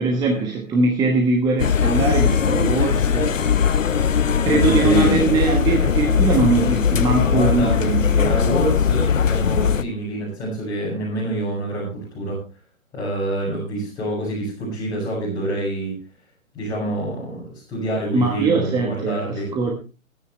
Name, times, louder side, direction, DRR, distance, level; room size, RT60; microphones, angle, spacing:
voice 1, 0.0-3.4 4.4-8.4 18.1-19.7, right 3 dB, 10° right, 1 dB, 1.2 m, -21 dB
sound 1, 1.6-9.8, left 7 dB, 65° left, 1.0 m, -19 dB
voice 2, 4.4-5.1 7.3-7.7 8.2-12.4 12.9-15.9 16.5-19.5, right 1 dB, 10° left, -8 dB, 6.4 m, -27 dB
22.0 x 9.6 x 3.3 m, 0.33 s
figure-of-eight pair, 135°, 41 cm